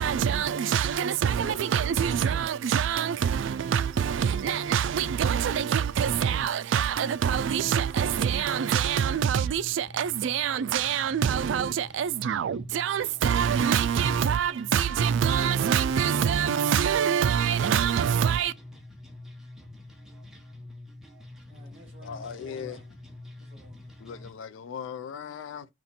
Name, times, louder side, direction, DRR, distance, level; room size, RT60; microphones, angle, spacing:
voice 1, 0.0-18.5, right 8 dB, 80° right, 0.3 m, -25 dB
sound 1, 8.3-24.3, left 2 dB, 5° right, 0.7 m, -46 dB
voice 2, 21.5-22.9 23.4-24.0, equal, 30° right, 1.4 m, -52 dB
voice 3, 22.0-22.8 24.0-25.7, left 7 dB, 80° left, 0.3 m, -38 dB
4.2 x 3.0 x 4.1 m
head